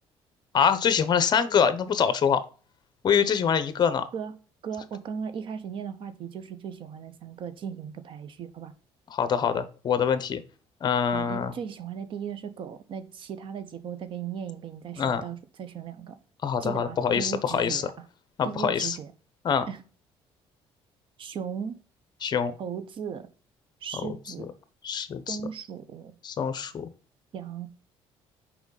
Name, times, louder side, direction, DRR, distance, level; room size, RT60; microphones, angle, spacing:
voice 1, 0.5-2.4 3.0-4.1 9.1-10.4 10.8-11.5 15.0-15.2 16.4-17.9 18.4-19.0 19.4-19.7 22.2-22.5 24.8-25.4 26.2-26.9, left 7 dB, 45° left, 12 dB, 0.9 m, -24 dB
voice 2, 4.6-8.7 11.1-16.2 16.6-17.9 18.4-19.1 19.7-19.8 21.2-21.8 22.6-23.3 23.8-24.5 25.3-26.1 27.3-27.7, right 7 dB, 55° right, 13 dB, 0.8 m, -37 dB
6.2 x 4.8 x 4.0 m, 0.38 s
cardioid pair, 125°, 11 cm